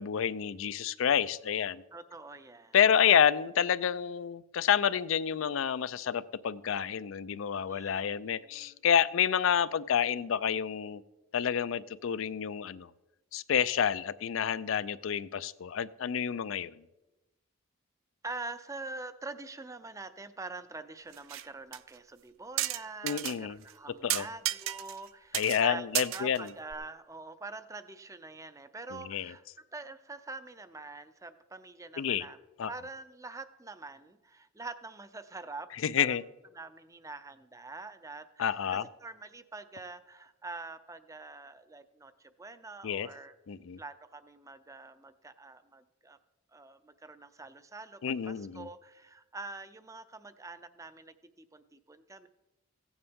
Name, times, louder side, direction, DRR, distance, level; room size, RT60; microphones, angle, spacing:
voice 1, 0.0-1.8 2.7-11.0 11.3-12.9 13.3-16.8 23.0-23.6 24.0-24.3 25.3-26.5 28.9-29.3 32.0-32.3 32.6-32.7 35.8-36.2 38.4-38.8 42.8-43.1 43.5-43.8 48.0-48.7, left 8 dB, 75° left, 17 dB, 0.4 m, -29 dB
voice 2, 1.9-3.2 7.7-8.8 18.2-29.4 29.7-32.4 32.7-35.7 36.0-36.2 36.5-43.3 43.8-46.2 46.5-52.3, right 3 dB, 15° right, 12 dB, 0.5 m, -45 dB
sound 1, 21.1-21.5 21.7-21.8 22.6-23.4 23.7-23.8 24.1-25.1 25.3-25.6 25.9-26.7, right 14 dB, 70° right, 0.4 m, -33 dB
15.5 x 9.6 x 3.6 m, 1.0 s
head